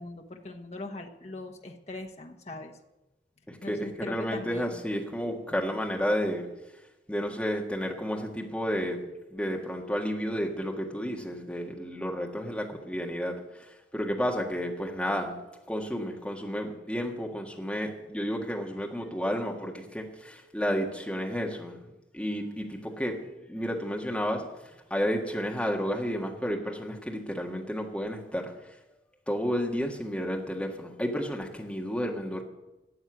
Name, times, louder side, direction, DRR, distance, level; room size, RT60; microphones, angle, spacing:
voice 1, 0.0-2.7 3.6-4.8, left 2 dB, 35° left, 3 dB, 1.2 m, -40 dB
voice 2, 3.5-6.5 7.1-9.1 9.3-15.4 15.7-21.8 22.1-23.2 23.5-24.5 24.9-28.5 29.3-32.4, equal, 5° left, 0 dB, 1.7 m, -31 dB
12.5 x 8.0 x 9.3 m, 0.99 s
head